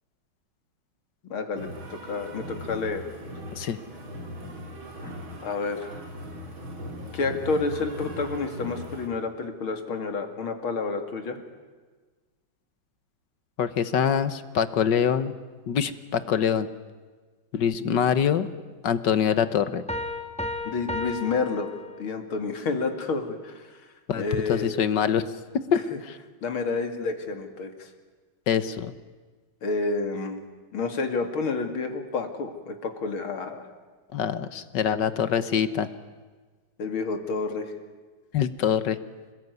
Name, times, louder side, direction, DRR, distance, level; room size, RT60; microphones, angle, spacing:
voice 1, 1.3-3.0 5.0-5.1 5.4-6.0 7.1-11.4 20.6-21.7 22.0-23.9 24.2-24.7 25.9-26.0 26.4-27.9 29.6-30.5 30.7-33.7 36.8-37.7, left 4 dB, 85° left, 6 dB, 3.2 m, -29 dB
sound 1, 1.5-9.1, equal, 70° right, 4.5 m, -39 dB
voice 2, 13.6-15.3 15.7-16.7 17.5-18.5 18.8-19.8 24.1-24.2 24.5-25.2 25.7-26.1 28.5-28.9 34.1-35.9 38.3-39.0, left 8 dB, 60° left, 13 dB, 1.7 m, -24 dB
sound 2, 19.9-22.4, left 2 dB, 5° left, 1.5 m, -34 dB
26.5 x 21.0 x 9.6 m, 1.4 s
omnidirectional pair, 2.2 m